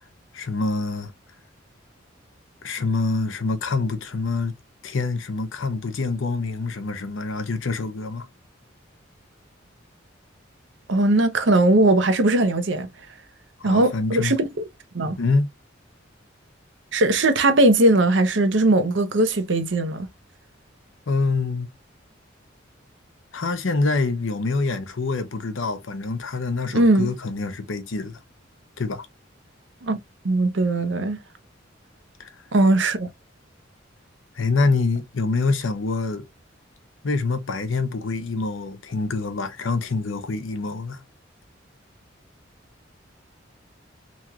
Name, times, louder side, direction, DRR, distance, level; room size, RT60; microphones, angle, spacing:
voice 1, 0.3-1.1 2.6-4.6 4.8-8.3 13.6-14.3 15.2-15.5 21.1-21.7 23.3-28.2 28.8-29.1 32.2-32.3 34.3-36.3 37.0-41.0, left 3 dB, 85° left, 0.7 m, -25 dB
voice 2, 10.9-12.9 13.6-14.5 14.9-15.2 16.9-20.1 26.7-27.1 29.8-30.0 30.2-31.2 32.5-33.1, right 2 dB, 70° right, 0.7 m, -19 dB
3.0 x 2.9 x 2.4 m
head